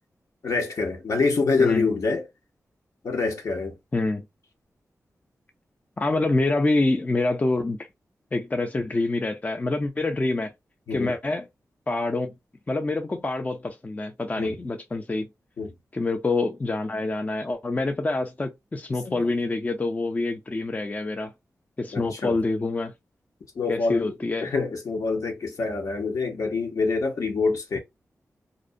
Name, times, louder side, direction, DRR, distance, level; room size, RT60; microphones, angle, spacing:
voice 1, 0.4-2.2 3.0-3.8 10.9-11.1 14.4-14.5 15.6-15.7 19.0-19.3 21.9-22.4 23.6-24.1 24.4-27.8, left 4 dB, 75° left, 0.8 m, -26 dB
voice 2, 6.0-7.8 8.3-10.5 10.9-11.5 11.9-12.3 12.7-15.3 15.9-21.3 21.8-22.9 23.7-24.5, left 2 dB, 25° left, 0.4 m, -26 dB
2.5 x 2.1 x 2.5 m
cardioid pair, 75°, 6 cm